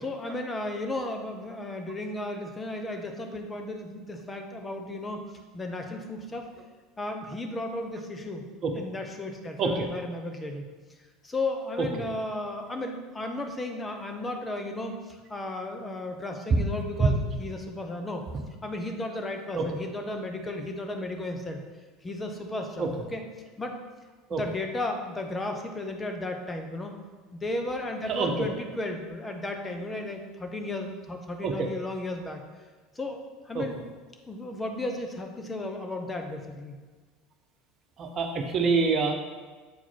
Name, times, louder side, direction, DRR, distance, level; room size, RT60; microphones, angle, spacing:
voice 1, 0.0-5.2 5.5-6.5 7.0-8.4 8.7-10.7 11.2-18.2 18.6-21.6 22.0-23.2 23.6-23.8 24.3-27.0 27.3-32.4 32.9-33.8 34.3-36.8, left 2 dB, 20° left, 4 dB, 1.1 m, -34 dB
voice 2, 28.1-28.5 31.4-31.7 33.5-33.6 38.0-39.1, right 4 dB, 45° right, 3 dB, 1.2 m, -25 dB
7.7 x 4.4 x 4.5 m, 1.4 s
hypercardioid pair, 75°, 0 cm